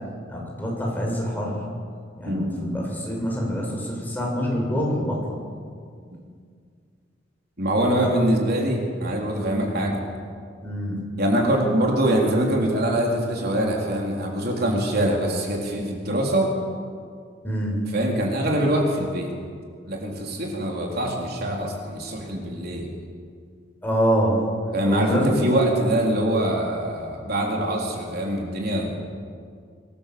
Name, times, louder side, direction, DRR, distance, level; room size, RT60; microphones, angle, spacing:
voice 1, 0.3-1.6 2.2-5.4 8.0-8.1 10.6-11.0 17.4-17.8 23.8-24.4 24.8-25.4, equal, 10° left, -2 dB, 6.9 m, -25 dB
voice 2, 2.3-2.6 7.6-10.0 11.2-16.5 17.9-19.3 19.8-22.9 24.7-28.9, right 1 dB, 55° right, 0 dB, 4.0 m, -24 dB
26.0 x 19.5 x 7.9 m, 2.1 s
head